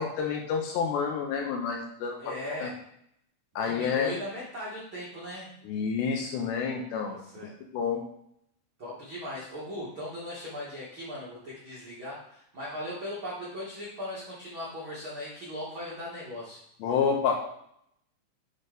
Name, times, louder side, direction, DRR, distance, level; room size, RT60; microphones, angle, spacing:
voice 1, 0.0-2.3 2.6-2.7 3.6-4.1 5.7-8.0 16.8-17.4, left 6 dB, 75° left, 1 dB, 2.8 m, -29 dB
voice 2, 2.2-2.7 3.6-5.5 7.0-7.5 8.8-16.6, left 1 dB, 60° right, -8 dB, 1.3 m, -38 dB
8.7 x 3.9 x 5.2 m, 0.72 s
omnidirectional pair, 5.5 m